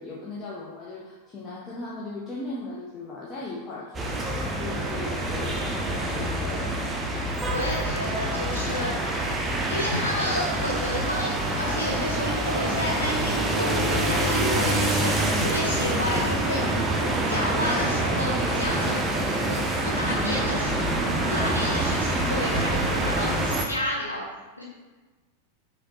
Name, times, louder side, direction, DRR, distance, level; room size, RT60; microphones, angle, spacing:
voice 1, 0.0-4.2 4.6-6.9, left 2 dB, 25° left, -5 dB, 0.7 m, -37 dB
sound 1, 3.9-23.7, right 1 dB, 15° right, 0.5 m, -26 dB
voice 2, 7.5-8.9 9.7-16.6 17.2-19.0 19.3-24.2 24.6-24.7, left 1 dB, 85° left, -4 dB, 0.7 m, -31 dB
5.0 x 3.1 x 3.0 m, 1.3 s
figure-of-eight pair, 90°, 0 cm